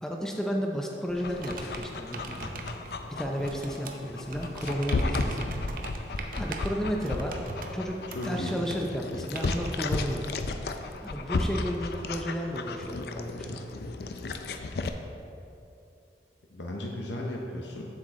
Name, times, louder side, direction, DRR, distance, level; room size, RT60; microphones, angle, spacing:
voice 1, 0.0-2.5 3.1-5.5 6.4-7.5 7.7-8.0 8.2-10.3 11.0-13.7, equal, 5° left, 0 dB, 0.5 m, -33 dB
Dog, 1.1-14.9, left 3 dB, 65° left, 0.4 m, -34 dB
sound 1, 1.4-9.7, right 3 dB, 50° right, 0.6 m, -42 dB
voice 2, 8.1-8.6 16.5-17.9, left 1 dB, 90° left, -1 dB, 0.7 m, -35 dB
7.6 x 6.8 x 3.6 m, 2.6 s
head